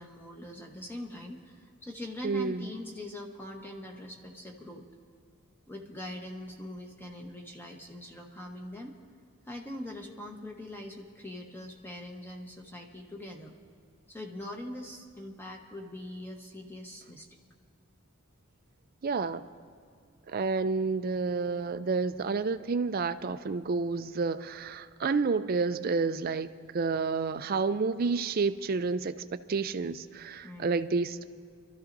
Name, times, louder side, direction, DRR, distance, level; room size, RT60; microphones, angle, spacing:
voice 1, 0.0-4.8 5.7-8.9 9.4-13.5 14.1-17.3 30.4-30.9, left 1 dB, 10° left, 1 dB, 1.1 m, -42 dB
voice 2, 2.2-2.7 19.0-19.4 20.3-31.2, right 4 dB, 45° right, 11 dB, 0.4 m, -30 dB
27.0 x 13.5 x 2.6 m, 2.2 s
head